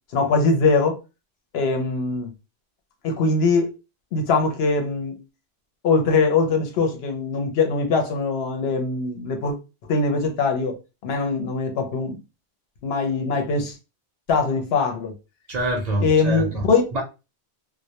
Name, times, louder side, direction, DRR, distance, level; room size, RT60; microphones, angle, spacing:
voice 1, 0.1-1.0 1.5-2.3 3.0-3.7 4.1-5.2 5.8-9.5 9.9-10.8 11.0-12.2 12.8-13.8 14.3-15.1 16.0-16.8, left 4 dB, 70° left, 0.8 m, -22 dB
voice 2, 15.5-16.6 16.9-17.0, right 1 dB, 50° right, 0.6 m, -25 dB
2.1 x 2.1 x 2.7 m
omnidirectional pair, 1.1 m